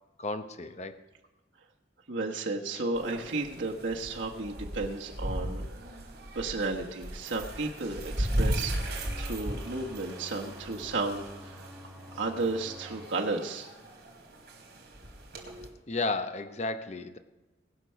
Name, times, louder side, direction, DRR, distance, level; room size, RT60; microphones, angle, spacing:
voice 1, 0.2-1.0 15.9-17.2, left 3 dB, 35° left, 9 dB, 0.7 m, -33 dB
voice 2, 2.1-5.6 6.3-11.7 12.1-13.7, right 3 dB, 85° right, -1 dB, 1.3 m, -33 dB
sound 1, 2.9-15.7, right 1 dB, 60° right, 3.1 m, -37 dB
sound 2, 9.0-13.1, left 1 dB, ahead, 0.7 m, -48 dB
19.5 x 6.7 x 5.7 m, 1.1 s
head